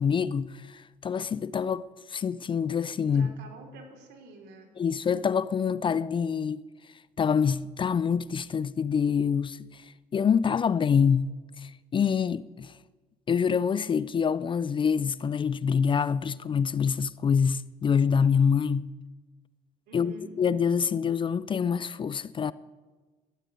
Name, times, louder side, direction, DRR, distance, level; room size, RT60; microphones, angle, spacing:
voice 1, 0.0-3.3 4.8-6.7 7.2-9.9 10.1-12.7 13.3-18.9 19.9-22.5, left 6 dB, 30° left, 0.4 m, -26 dB
voice 2, 3.0-4.7 19.9-20.3, right 3 dB, 80° right, 3.2 m, -47 dB
12.5 x 9.8 x 9.0 m
cardioid pair, 110°, 17 cm